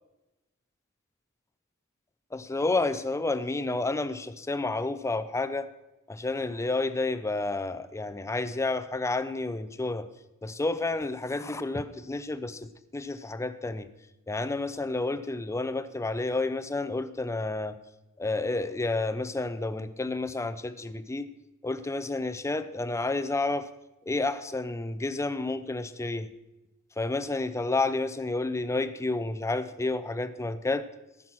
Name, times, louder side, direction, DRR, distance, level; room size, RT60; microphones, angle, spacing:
voice 1, 2.3-5.7 6.1-10.1 10.4-12.6 12.9-13.9 14.3-17.8 18.2-21.3 21.6-23.7 24.1-26.3 27.0-30.8, left 2 dB, 15° left, 13 dB, 0.4 m, -30 dB
14.0 x 6.1 x 6.0 m, 0.98 s
head